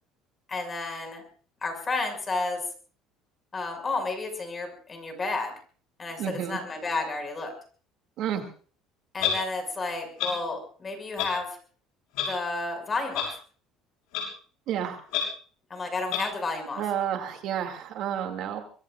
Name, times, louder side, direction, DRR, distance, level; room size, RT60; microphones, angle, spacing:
voice 1, 0.5-1.2 1.6-2.6 3.5-5.5 6.0-7.5 9.1-11.5 12.2-13.4 15.7-16.8, left 3 dB, 25° left, 4 dB, 6.2 m, -31 dB
voice 2, 6.2-6.6 8.2-8.4 14.7-15.0 16.8-18.6, right 9 dB, 60° right, 4 dB, 2.5 m, -30 dB
Clock, 9.2-9.3 10.2-10.3 11.2-11.3 12.1-12.3 13.1-13.3 14.1-14.2 15.1-15.2 16.1-16.2, left 10 dB, 85° left, 6.3 m, -27 dB
25.0 x 22.5 x 2.5 m, 0.42 s
cardioid pair, 130°, 0 cm